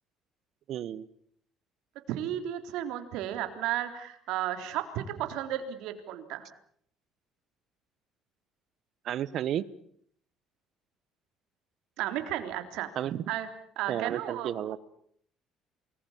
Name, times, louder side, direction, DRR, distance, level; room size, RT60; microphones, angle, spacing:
voice 1, 0.7-1.1 9.0-9.6 13.0-13.2 13.9-14.8, right 11 dB, 55° right, 19 dB, 1.1 m, -32 dB
voice 2, 2.1-6.5 12.0-12.9 13.3-13.5 13.8-14.5, right 12 dB, 80° right, 8 dB, 3.5 m, -33 dB
28.5 x 20.5 x 7.3 m, 0.65 s
cardioid pair, 115°, 0 cm